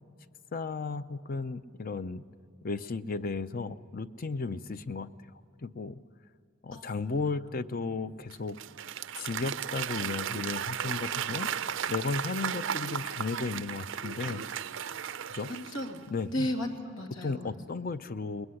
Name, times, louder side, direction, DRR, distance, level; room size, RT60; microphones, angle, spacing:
voice 1, 0.5-2.2 2.6-5.1 5.6-6.0 6.6-8.6 9.2-14.4 15.3-15.5 16.1-16.5 17.2-18.5, left 4 dB, 45° left, 13 dB, 0.6 m, -34 dB
Applause / Crowd, 8.3-16.1, right 9 dB, 70° right, 0.5 m, -35 dB
voice 2, 15.5-16.0 16.3-17.5, left 1 dB, 85° left, 3 dB, 2.6 m, -34 dB
21.0 x 20.5 x 9.8 m, 2.3 s
head